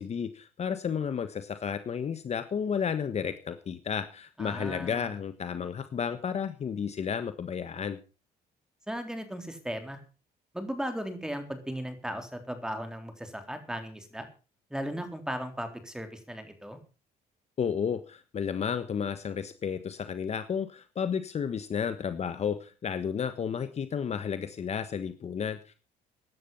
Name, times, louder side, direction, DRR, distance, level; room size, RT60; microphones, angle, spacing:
voice 1, 0.0-8.0 17.6-25.7, left 7 dB, 40° left, 10 dB, 1.4 m, -32 dB
voice 2, 4.4-5.1 8.9-10.0 10.5-14.3 14.7-16.8, equal, 5° right, 7 dB, 3.7 m, -36 dB
15.5 x 11.5 x 5.6 m, 0.34 s
cardioid pair, 110°, 17 cm